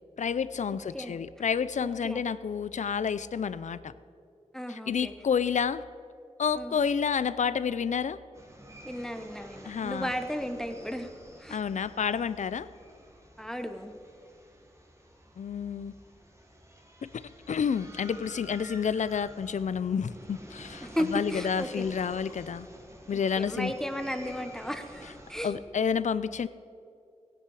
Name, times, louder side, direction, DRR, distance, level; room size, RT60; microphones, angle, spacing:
voice 1, 0.2-3.9 4.7-5.8 6.4-8.2 9.6-10.1 11.5-12.7 15.4-15.9 17.0-22.7 23.1-23.7 25.4-26.5, left 7 dB, 80° left, 16 dB, 0.4 m, -30 dB
voice 2, 1.8-2.2 4.5-5.1 6.6-6.8 8.8-11.1 11.4-11.6 13.4-14.0 20.8-21.8 23.1-25.6, equal, 5° left, 7 dB, 0.9 m, -34 dB
sound 1, 8.3-25.6, right 1 dB, 25° right, 1.7 m, -50 dB
16.0 x 10.0 x 4.8 m, 2.5 s
wide cardioid pair, 70°, 12 cm